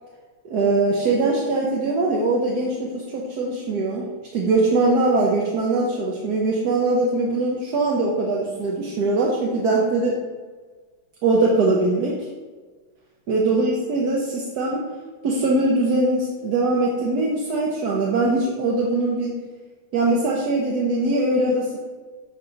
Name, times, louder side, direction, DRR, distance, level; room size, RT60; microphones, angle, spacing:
voice 1, 0.4-4.1 4.3-10.2 11.2-12.3 13.3-14.8 15.2-19.4 19.9-21.8, right 2 dB, 60° right, -3 dB, 1.2 m, -21 dB
8.8 x 3.1 x 5.0 m, 1.4 s
omnidirectional pair, 2.3 m